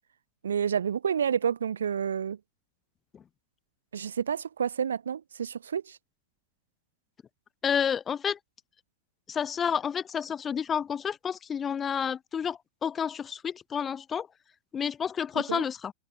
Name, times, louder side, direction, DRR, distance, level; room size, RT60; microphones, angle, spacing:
voice 1, 0.4-2.4 3.9-6.0 15.5-15.6, right 7 dB, 70° right, 2.4 m, -29 dB
voice 2, 7.6-8.4 9.3-14.3 14.7-15.9, left 7 dB, 20° left, 2.2 m, -30 dB
figure-of-eight pair, 90°, 0 cm